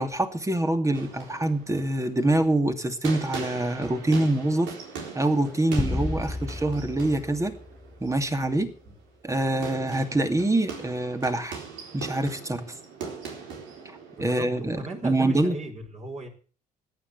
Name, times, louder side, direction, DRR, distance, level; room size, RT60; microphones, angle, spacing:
voice 1, 0.0-4.7 5.1-7.5 8.0-8.7 9.2-11.6 11.9-12.7 14.2-15.6, right 1 dB, 15° right, 8 dB, 2.5 m, -25 dB
sound 1, 0.9-15.5, right 5 dB, 70° right, 4.2 m, -41 dB
sound 2, 5.8-8.4, left 2 dB, 10° left, 0.6 m, -32 dB
voice 2, 14.2-16.3, right 2 dB, 35° right, 2 dB, 5.0 m, -38 dB
14.0 x 9.8 x 8.1 m, 0.40 s
hypercardioid pair, 60°, 20 cm